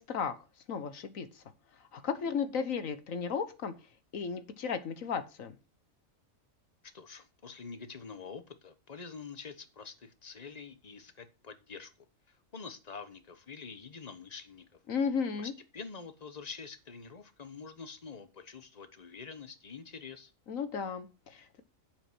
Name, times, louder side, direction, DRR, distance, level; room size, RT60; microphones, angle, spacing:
voice 1, 0.0-1.4 1.9-3.7 4.1-5.5 14.9-15.5 20.5-21.6, left 6 dB, 90° left, 1.6 m, -34 dB
voice 2, 6.9-11.9 12.3-14.6 15.4-20.3, left 5 dB, 35° left, 1.2 m, -46 dB
9.1 x 7.2 x 6.2 m
omnidirectional pair, 1.4 m